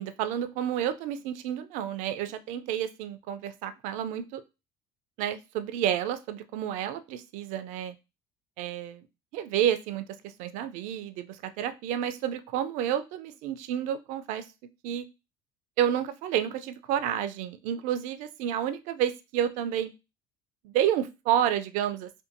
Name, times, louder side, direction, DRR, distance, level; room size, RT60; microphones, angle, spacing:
voice 1, 0.0-4.4 5.2-7.9 8.6-9.1 9.3-14.5 14.8-15.0 15.8-19.9 20.6-22.2, right 10 dB, 65° right, 11 dB, 0.4 m, -30 dB
2.6 x 2.5 x 2.5 m, 0.27 s
hypercardioid pair, 75°, 14 cm